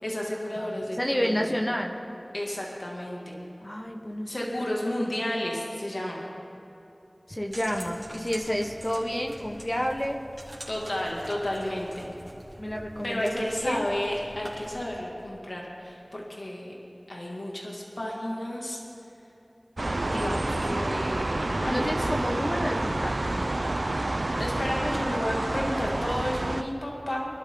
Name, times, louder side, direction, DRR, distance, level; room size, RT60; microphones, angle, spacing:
voice 1, 0.0-1.5 2.3-3.4 4.3-6.2 10.7-12.1 13.0-16.7 17.1-18.8 20.1-22.1 24.4-27.3, left 1 dB, 75° left, -3 dB, 2.4 m, -32 dB
voice 2, 0.6-2.0 3.6-4.4 7.3-10.2 12.6-13.9 21.6-23.5, equal, 30° left, 1 dB, 1.3 m, -30 dB
sound 1, 7.5-14.9, right 1 dB, 30° right, 2.8 m, -45 dB
sound 2, 19.8-26.6, right 2 dB, 70° right, 0.6 m, -28 dB
23.0 x 12.5 x 3.9 m, 3.0 s
wide cardioid pair, 45°, 0 cm